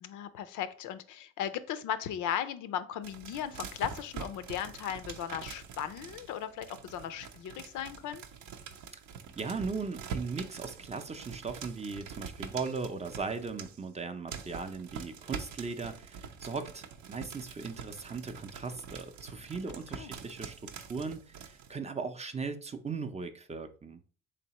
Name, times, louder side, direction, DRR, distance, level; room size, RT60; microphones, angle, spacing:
voice 1, 0.0-8.2 20.0-20.2, left 9 dB, 80° left, 0.5 m, -37 dB
sound 1, 3.0-14.0 14.3-21.8, right 6 dB, 80° right, 0.6 m, -45 dB
voice 2, 9.4-24.0, right 4 dB, 20° right, 0.4 m, -38 dB
3.9 x 3.3 x 2.9 m
cardioid pair, 90°, 30 cm